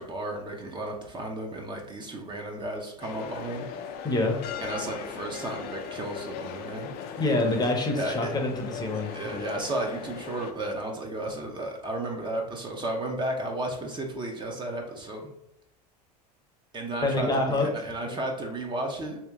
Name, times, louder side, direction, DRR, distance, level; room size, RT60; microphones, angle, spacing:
voice 1, 0.0-3.6 4.6-6.9 7.9-8.3 9.1-15.3 16.7-19.2, right 1 dB, 25° right, 1 dB, 0.7 m, -33 dB
sound 1, 3.0-10.5, left 7 dB, 50° left, 0.5 m, -39 dB
voice 2, 4.0-4.4 7.2-9.5 17.0-17.7 18.0-18.2, left 2 dB, 20° left, 2 dB, 0.8 m, -26 dB
3.0 x 2.9 x 3.6 m, 0.83 s
hypercardioid pair, 95°, 20 cm